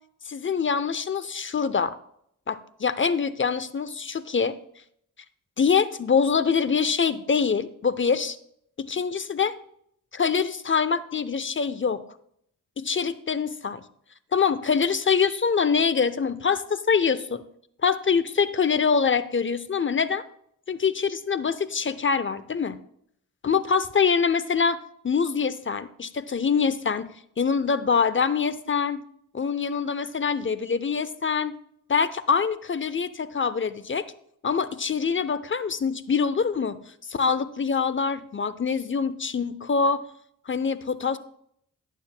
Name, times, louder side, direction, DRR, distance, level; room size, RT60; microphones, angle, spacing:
voice 1, 0.3-1.9 2.5-4.5 5.6-8.4 8.8-9.5 10.1-12.0 12.8-13.8 14.3-17.4 17.8-20.2 20.7-22.8 23.4-24.8 25.0-27.1 27.4-29.0 29.3-31.6 31.9-34.0 34.4-36.8 37.1-40.0 40.5-41.2, left 6 dB, 35° left, 15 dB, 0.7 m, -24 dB
11.5 x 9.3 x 2.2 m, 0.69 s
cardioid pair, 50°, 34 cm